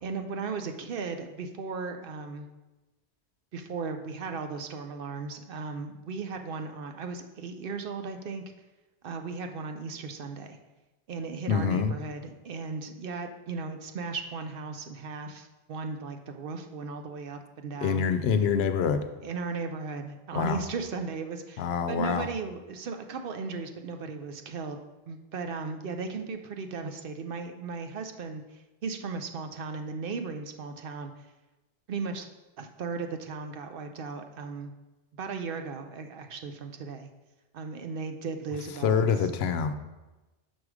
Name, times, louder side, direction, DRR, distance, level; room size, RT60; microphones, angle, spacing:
voice 1, 0.0-2.5 3.5-8.4 9.0-10.6 11.1-18.0 19.2-31.3 31.9-32.3 32.6-34.7 35.2-37.1 37.5-39.0, right 4 dB, 65° right, 6 dB, 0.7 m, -36 dB
voice 2, 11.5-11.9 17.8-19.0 20.3-20.6 21.6-22.3 38.8-39.7, left 6 dB, 75° left, 8 dB, 0.8 m, -25 dB
6.1 x 4.9 x 4.8 m, 1.1 s
omnidirectional pair, 1.1 m